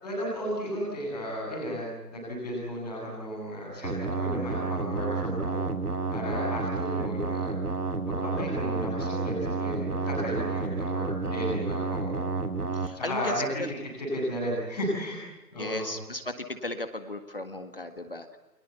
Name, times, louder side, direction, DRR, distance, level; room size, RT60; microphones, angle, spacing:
voice 1, 0.0-5.6 6.1-7.5 8.0-12.2 12.9-13.6 14.0-15.2 15.5-15.9, equal, ahead, -17 dB, 1.9 m, -34 dB
sound 1, 3.8-12.9, right 3 dB, 65° right, 3.7 m, -30 dB
voice 2, 12.7-13.7 15.6-18.4, left 2 dB, 35° left, 8 dB, 1.8 m, -36 dB
29.5 x 23.5 x 8.2 m, 1.0 s
figure-of-eight pair, 180°, 48 cm